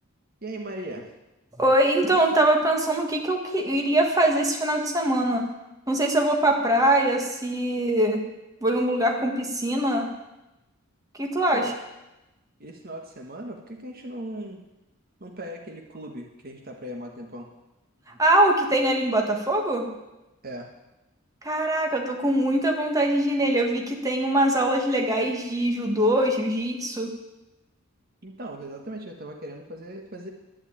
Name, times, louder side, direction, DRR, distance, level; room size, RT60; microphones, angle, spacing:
voice 1, 0.4-1.1 11.5-11.8 12.6-14.6 15.2-17.5 20.4-20.7 28.2-30.3, right 1 dB, 45° right, 3 dB, 1.5 m, -38 dB
voice 2, 1.6-5.5 5.9-8.2 8.6-10.1 11.2-11.7 18.2-19.9 21.4-27.1, right 1 dB, 15° right, 2 dB, 1.8 m, -23 dB
11.5 x 9.7 x 8.5 m, 0.98 s
head